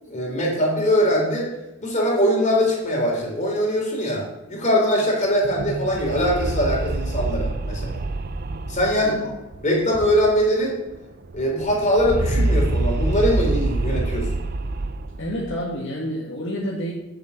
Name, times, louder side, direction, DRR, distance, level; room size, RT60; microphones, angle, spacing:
voice 1, 0.0-1.5 1.8-8.0 8.7-9.2 9.6-10.8 11.3-14.3, equal, 40° left, -2 dB, 3.8 m, -22 dB
sound 1, 5.3-10.6 10.9-11.0 11.2-15.6, right 2 dB, 50° right, 0.6 m, -26 dB
voice 2, 15.2-16.9, equal, 65° left, -3 dB, 1.8 m, -29 dB
9.4 x 7.1 x 7.0 m, 0.97 s
head